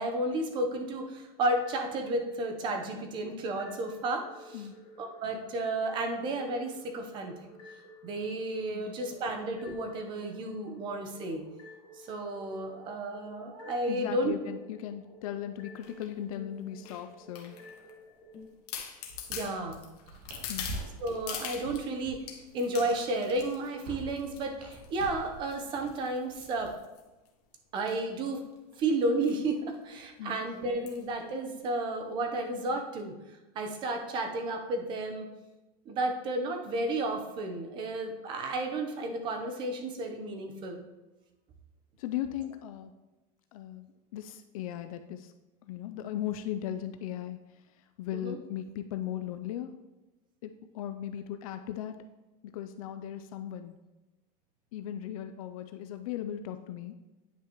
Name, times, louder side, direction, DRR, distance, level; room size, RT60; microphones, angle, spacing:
voice 1, 0.0-4.6 5.0-7.5 8.0-11.4 12.0-14.4 19.3-19.8 21.0-22.2 22.5-26.8 27.7-28.4 28.8-33.1 33.5-35.3 35.9-40.8 48.1-48.4, right 2 dB, 25° right, 4 dB, 0.7 m, -32 dB
sound 1, 1.6-2.6 3.6-18.5, left 1 dB, 25° left, 1.2 m, -53 dB
voice 2, 13.9-17.6 20.5-20.7 30.2-30.4 30.8-30.9 42.0-42.9 43.5-45.3 45.6-49.7 50.4-52.0 52.4-53.8 54.7-56.9, left 11 dB, 65° left, 8 dB, 0.4 m, -38 dB
sound 2, 15.8-16.1 16.8-17.9 18.3-18.4 18.7-21.9 22.3-23.7 24.2-24.4 24.7-25.1 25.5-27.3 27.8-28.0 28.3-28.4 28.6-28.8 29.2-29.4 29.7-29.8 30.9-31.1 31.6-31.7, left 8 dB, 85° left, 1.4 m, -42 dB
sound 3, 19.0-26.7, right 2 dB, 70° right, 2.0 m, -46 dB
9.7 x 5.8 x 3.0 m, 1.1 s
supercardioid pair, 175°, 20 cm